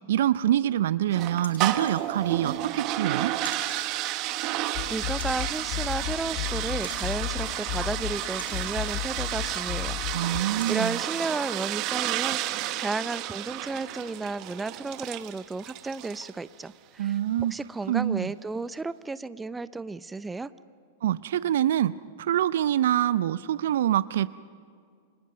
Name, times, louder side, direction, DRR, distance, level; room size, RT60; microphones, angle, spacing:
voice 1, 0.1-3.3 10.1-11.0 17.0-17.5 17.9-18.3 21.0-24.3, right 11 dB, 65° right, 17 dB, 0.6 m, -25 dB
sound 1, 1.1-16.4, right 14 dB, 45° right, 1.2 m, -32 dB
sound 2, 1.4-2.0 3.4-3.9 5.2-5.5 6.8-7.2 8.4-8.8 9.8-9.9 10.6-11.1 11.6-11.7, left 4 dB, 90° left, 1.6 m, -45 dB
sound 3, 4.7-10.4, left 18 dB, 50° left, 0.7 m, -34 dB
voice 2, 4.9-10.0 10.7-20.5, right 3 dB, 10° right, 15 dB, 0.6 m, -33 dB
29.5 x 26.0 x 5.3 m, 2.1 s
hypercardioid pair, 105°, 0 cm